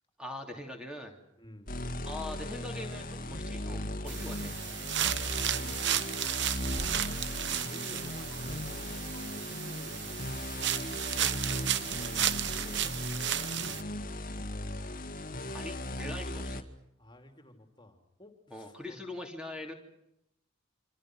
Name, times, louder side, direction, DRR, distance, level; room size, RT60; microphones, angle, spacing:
voice 1, 0.2-1.2 2.0-4.5 15.5-16.6 18.5-19.7, left 1 dB, 5° right, 2 dB, 3.0 m, -42 dB
voice 2, 1.4-1.7 5.3-5.8 6.4-7.3 7.6-9.1 9.4-10.1 11.1-13.2 17.0-19.0, equal, 20° left, 5 dB, 3.1 m, -52 dB
sound 1, 1.7-16.6, left 1 dB, 40° left, 2.0 m, -37 dB
sound 2, 4.1-13.8, right 11 dB, 55° right, 1.0 m, -33 dB
27.0 x 27.0 x 6.3 m, 0.80 s
head